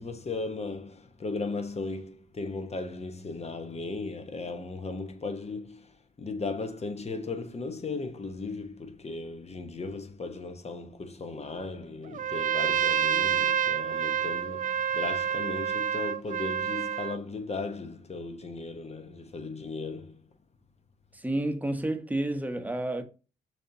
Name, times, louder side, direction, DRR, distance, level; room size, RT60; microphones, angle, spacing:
voice 1, 0.0-5.9 6.2-20.2, left 3 dB, 30° left, 1.0 m, -36 dB
Trumpet, 12.1-17.2, right 9 dB, 40° right, 0.4 m, -28 dB
voice 2, 21.1-23.0, right 1 dB, 10° right, 1.0 m, -30 dB
6.4 x 2.9 x 2.7 m
hypercardioid pair, 45°, 21 cm